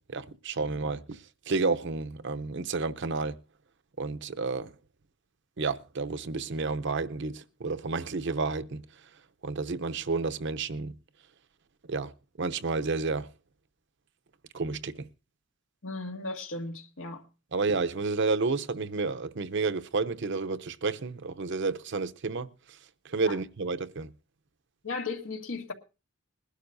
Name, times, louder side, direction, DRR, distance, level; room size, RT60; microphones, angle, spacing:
voice 1, 0.1-1.0 1.5-3.3 4.0-4.6 5.6-8.8 9.4-10.9 11.9-12.1 12.4-13.3 14.5-14.9 17.5-22.5 23.1-24.1, right 4 dB, 65° right, 0.7 m, -30 dB
voice 2, 15.8-17.2 23.2-23.4 24.8-25.7, left 3 dB, 90° left, 1.8 m, -36 dB
21.5 x 11.5 x 2.6 m
head